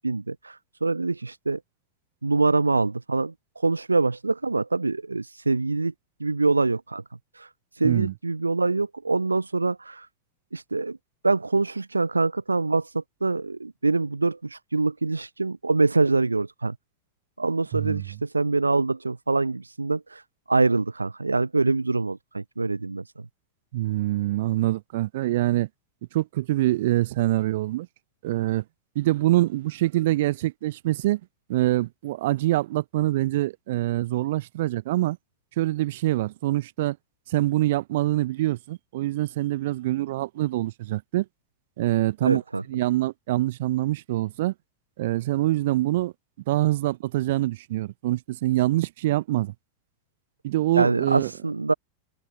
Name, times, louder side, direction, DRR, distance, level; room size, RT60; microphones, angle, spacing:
voice 1, 0.0-1.6 2.2-5.9 6.2-7.0 7.3-10.1 10.5-11.0 11.2-16.8 17.4-23.0 42.2-42.6 50.7-51.7, right 3 dB, 80° right, 0.4 m, -25 dB
voice 2, 7.8-8.1 17.7-18.0 23.7-25.7 26.1-27.9 28.2-28.6 28.9-31.2 31.5-35.2 35.6-37.0 37.3-41.3 41.8-42.4 42.7-44.5 45.0-46.1 46.5-49.5 50.4-51.3, right 16 dB, 55° right, 0.7 m, -25 dB
figure-of-eight pair, 90°, 0 cm